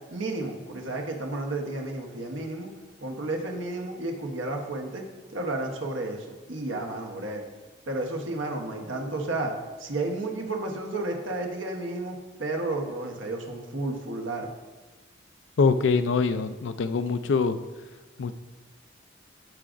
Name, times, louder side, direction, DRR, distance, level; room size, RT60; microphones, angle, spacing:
voice 1, 0.1-2.7 3.0-5.0 5.3-7.4 7.9-9.5 9.8-14.5, right 2 dB, 80° right, 2 dB, 1.1 m, -32 dB
voice 2, 15.6-17.6 18.2-18.3, left 4 dB, 70° left, 11 dB, 0.4 m, -24 dB
14.0 x 4.9 x 2.5 m, 1.2 s
head